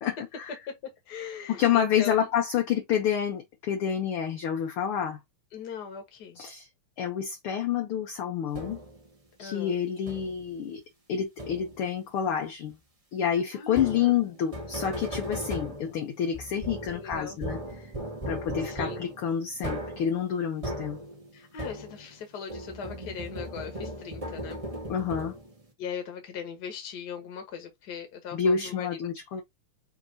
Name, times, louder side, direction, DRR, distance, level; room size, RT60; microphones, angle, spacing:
voice 1, 0.0-0.6 1.5-5.2 6.4-6.7 7.0-8.8 9.4-10.8 11.1-12.8 13.1-17.6 18.3-21.0 24.9-25.3 28.3-29.4, left 8 dB, 70° left, 1.4 m, -28 dB
voice 2, 0.7-2.3 5.5-6.4 9.4-9.8 13.5-14.2 16.9-17.4 18.6-19.0 21.3-24.6 25.8-29.1, left 7 dB, 45° left, 1.4 m, -39 dB
sound 1, 8.5-9.1 10.1-10.5 11.4-11.9 13.7-22.2 22.5-25.6, equal, 40° right, 0.4 m, -37 dB
6.5 x 2.9 x 2.7 m
omnidirectional pair, 3.4 m